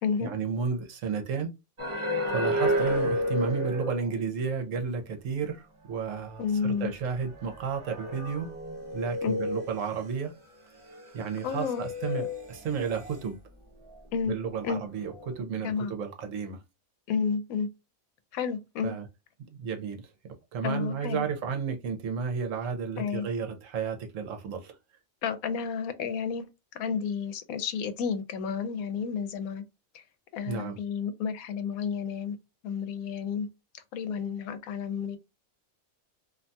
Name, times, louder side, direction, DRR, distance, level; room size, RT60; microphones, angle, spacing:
voice 1, 0.2-1.5 2.3-8.5 8.9-10.3 11.1-13.4 14.3-16.6 18.8-19.1 19.5-20.1 20.5-24.8 30.5-30.8, right 5 dB, 70° right, 1.0 m, -32 dB
sound 1, 1.8-4.5 4.8-4.9 6.6-6.7 7.3-10.3 10.9-13.2 14.1-14.7 15.0-15.3, equal, 45° right, 0.4 m, -32 dB
voice 2, 6.4-6.9 9.2-9.3 11.4-11.8 14.1-14.3 14.6-14.8 15.6-15.9 17.1-17.7 18.3-18.9 20.6-21.2 23.0-23.3 25.2-26.5 26.7-29.6 29.9-30.0 30.3-32.4 32.6-33.5 33.7-35.2, left 6 dB, 85° left, 1.0 m, -31 dB
2.7 x 2.2 x 2.6 m
omnidirectional pair, 1.4 m